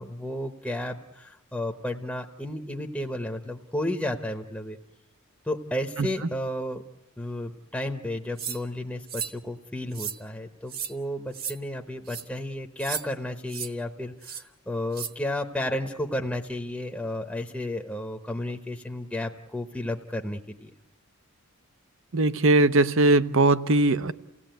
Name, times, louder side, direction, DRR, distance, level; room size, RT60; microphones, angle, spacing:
voice 1, 0.0-4.8 5.4-6.8 7.2-20.7, left 1 dB, 5° left, 3 dB, 0.9 m, -32 dB
sound 1, 8.4-8.6 9.1-9.4 9.9-10.2 10.7-10.9 11.3-11.5 12.1-12.2 12.8-13.0 13.5-13.7 14.2-14.4 14.9-15.1, right 8 dB, 45° right, 1.3 m, -34 dB
voice 2, 22.1-24.1, right 2 dB, 60° right, 13 dB, 0.8 m, -20 dB
29.0 x 17.0 x 9.1 m, 1.0 s
head